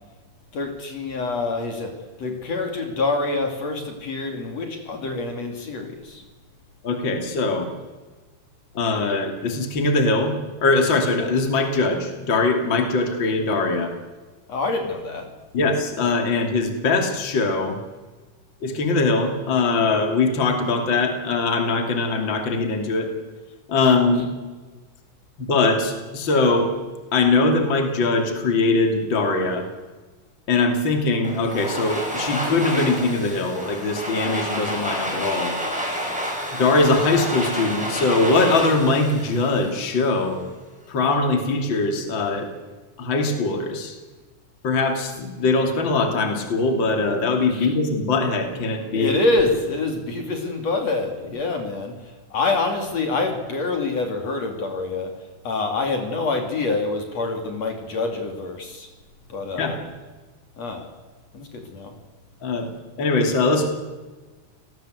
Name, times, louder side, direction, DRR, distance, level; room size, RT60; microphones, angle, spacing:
voice 1, 0.5-6.2 14.5-15.3 47.5-47.7 48.9-52.0 52.3-55.1 55.4-58.9 59.3-59.8 60.6-60.9 61.3-61.9, left 3 dB, 55° left, 4 dB, 3.8 m, -26 dB
voice 2, 6.8-7.7 8.7-10.3 10.6-13.9 15.5-17.8 18.6-23.1 23.7-24.2 25.4-26.7 27.1-29.7 30.5-35.5 36.5-40.4 40.9-42.5 43.0-43.9 44.6-49.1 59.5-59.8 62.4-62.7 63.0-63.7, left 3 dB, 40° left, 4 dB, 3.4 m, -21 dB
Domestic sounds home sounds, 31.2-40.2, equal, ahead, 7.4 m, -29 dB
28.5 x 19.0 x 8.0 m, 1.3 s
omnidirectional pair, 3.5 m